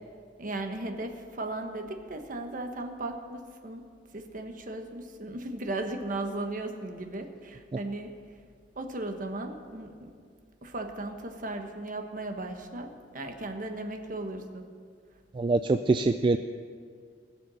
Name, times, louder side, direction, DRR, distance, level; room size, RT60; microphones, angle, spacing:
voice 1, 0.4-8.2 8.7-10.1 10.6-14.6, right 2 dB, 50° right, 5 dB, 1.2 m, -36 dB
voice 2, 15.4-16.4, right 3 dB, 25° right, 9 dB, 0.3 m, -24 dB
20.0 x 7.0 x 6.3 m, 2.1 s
head